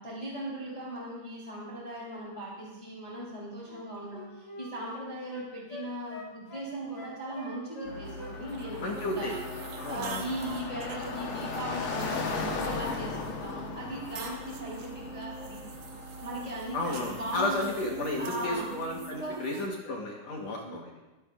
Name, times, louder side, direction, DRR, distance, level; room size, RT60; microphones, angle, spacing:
voice 1, 0.0-9.4 9.9-15.6 16.2-17.7 18.2-18.7 19.2-19.4 20.6-21.1, right 1 dB, 10° left, -6 dB, 3.0 m, -38 dB
Wind instrument woodwind instrument, 3.7-8.3 8.6-9.7 9.9-10.1, left 2 dB, 40° left, 2.8 m, -45 dB
Car passing by, 7.9-19.0, left 4 dB, 75° left, 1.2 m, -38 dB
sound 1, 8.0-19.7, right 5 dB, 80° right, 1.4 m, -45 dB
voice 2, 8.8-9.4 9.8-10.2 16.7-20.9, left 2 dB, 60° left, -1 dB, 2.0 m, -33 dB
22.5 x 8.9 x 2.4 m, 1.1 s
omnidirectional pair, 4.2 m